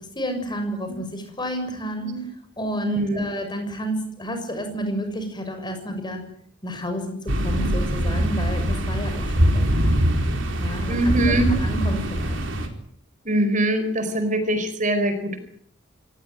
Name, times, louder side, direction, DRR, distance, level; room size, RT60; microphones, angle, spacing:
voice 1, 0.1-2.1 2.6-6.2 6.6-10.2 10.6-11.1 11.5-12.4, equal, 20° left, 6 dB, 6.7 m, -30 dB
voice 2, 2.8-3.2 10.9-11.5 13.2-15.4, right 1 dB, 40° right, 10 dB, 4.6 m, -23 dB
sound 1, 7.3-12.7, equal, 70° right, 4.6 m, -23 dB
26.5 x 17.5 x 9.4 m, 0.64 s
head